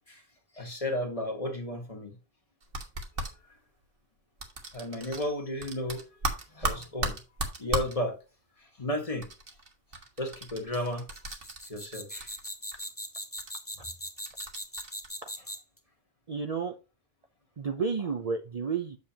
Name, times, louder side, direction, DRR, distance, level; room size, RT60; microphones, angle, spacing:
voice 1, 0.5-2.1 3.2-3.3 4.7-6.0 6.5-7.2 7.6-8.2 8.6-9.3 10.2-11.0 11.6-12.3, left 1 dB, 35° left, 1.6 m, -33 dB
sound 1, 2.6-3.3 4.4-5.3 5.6-7.9 9.2-11.9 12.2-12.9 13.4-13.5 14.2-15.1, right 2 dB, 60° right, 1.6 m, -35 dB
sound 2, 11.1-15.8, equal, 15° left, 1.5 m, -39 dB
voice 2, 16.3-16.7 17.6-19.0, right 5 dB, 40° right, 0.6 m, -31 dB
8.1 x 6.8 x 2.8 m
omnidirectional pair, 1.1 m